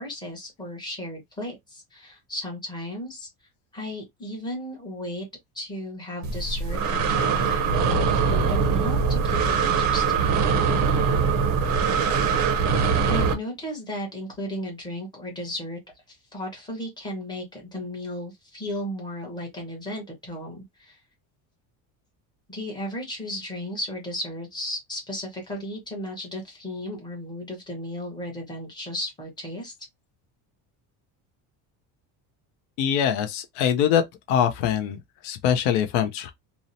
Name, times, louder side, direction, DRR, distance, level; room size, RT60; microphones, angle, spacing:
voice 1, 0.0-3.3 3.7-5.3 5.5-10.4 13.0-15.8 16.1-21.0 22.5-29.7, left 1 dB, 10° left, 0.8 m, -35 dB
Breathing, 6.2-13.3, right 5 dB, 45° right, 0.5 m, -22 dB
voice 2, 32.8-34.0 34.3-36.3, left 9 dB, 65° left, 0.5 m, -23 dB
2.6 x 2.0 x 2.6 m
cardioid pair, 180°, 43 cm